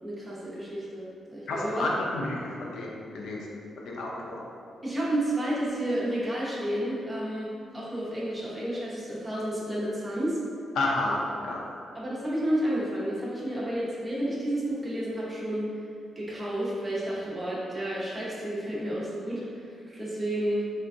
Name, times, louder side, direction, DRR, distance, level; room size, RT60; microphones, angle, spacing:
voice 1, 0.0-1.9 4.8-10.4 11.0-11.1 11.9-15.7 16.2-20.8, right 1 dB, 10° right, -8 dB, 0.8 m, -31 dB
voice 2, 1.5-4.4 10.8-11.6, left 2 dB, 85° left, -2 dB, 0.5 m, -31 dB
3.7 x 3.3 x 2.6 m, 2.3 s
wide cardioid pair, 165°, 0 cm